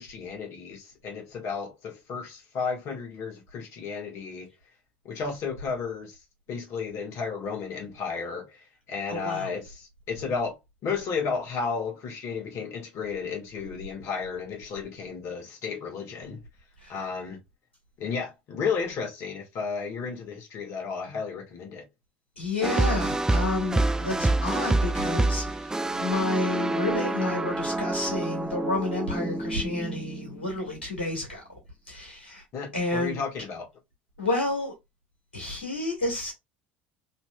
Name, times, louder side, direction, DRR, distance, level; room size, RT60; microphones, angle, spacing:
voice 1, 0.0-4.5 5.0-6.2 6.5-10.6 10.8-16.4 16.9-17.4 18.0-21.8 32.5-33.7, left 5 dB, 55° left, 1.5 m, -33 dB
voice 2, 9.1-9.5 16.8-16.9 22.4-31.6 31.9-32.4 32.7-33.2 34.2-34.7 35.3-36.3, left 2 dB, 90° left, 1.7 m, -30 dB
sound 1, 22.6-30.8, right 2 dB, 10° right, 0.4 m, -27 dB
4.1 x 2.9 x 2.2 m
hypercardioid pair, 65°, 6 cm